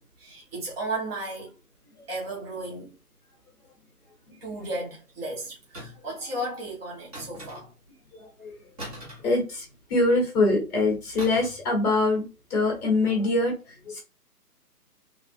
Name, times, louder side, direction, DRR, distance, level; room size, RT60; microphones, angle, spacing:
voice 1, 0.0-1.6 2.1-3.0 4.4-7.7 13.2-13.3, right 1 dB, 40° right, 1.3 m, -34 dB
sound 1, 5.7-6.2 7.1-7.9 8.8-10.0 11.2-11.7 11.9-12.2, equal, 25° right, 1.0 m, -42 dB
voice 2, 8.1-8.5 9.2-9.6 9.9-12.2 12.5-13.5 13.8-14.0, left 2 dB, 5° left, 1.0 m, -23 dB
3.3 x 2.3 x 4.0 m
figure-of-eight pair, 155°, 47 cm